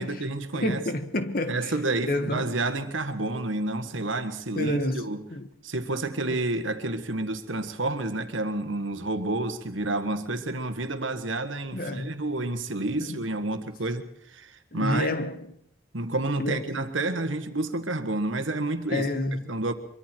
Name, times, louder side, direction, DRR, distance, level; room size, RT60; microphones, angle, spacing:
voice 1, 0.0-0.8 1.5-5.2 5.6-15.1 15.9-19.1 19.4-19.7, right 2 dB, 80° right, 1.7 m, -29 dB
voice 2, 0.5-1.7 2.0-2.5 4.6-5.5 11.7-12.1 13.0-13.2 14.7-15.5 16.4-16.7 18.9-19.4, left 1 dB, 45° left, 1.4 m, -29 dB
24.5 x 23.5 x 4.6 m
head